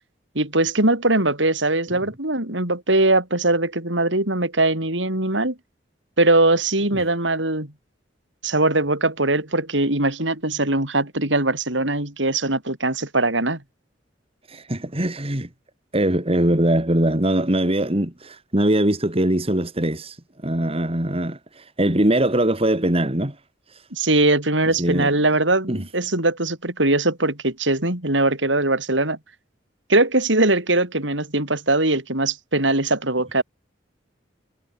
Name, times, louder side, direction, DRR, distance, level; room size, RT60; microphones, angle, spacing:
voice 1, 0.4-5.6 6.2-7.7 8.4-13.6 23.9-29.2 29.9-33.4, right 2 dB, 80° right, 7.2 m, -21 dB
voice 2, 14.5-15.5 15.9-20.2 20.4-23.3 24.8-25.1 25.7-25.8, right 1 dB, 30° right, 2.7 m, -21 dB
head